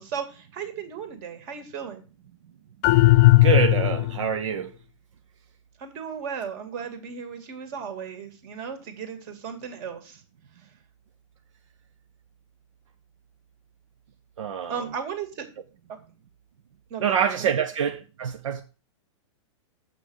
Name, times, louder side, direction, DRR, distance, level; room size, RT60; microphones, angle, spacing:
voice 1, 0.0-2.0 5.8-10.2 14.7-15.5 15.9-16.0 16.9-17.0 17.4-17.5, right 7 dB, 40° right, 2.3 m, -35 dB
sound 1, 2.8-4.3, left 18 dB, 40° left, 0.7 m, -16 dB
voice 2, 3.4-4.7 14.4-14.9 17.0-18.6, right 7 dB, 75° right, 0.9 m, -26 dB
7.7 x 5.9 x 6.4 m
hypercardioid pair, 145°, 16 cm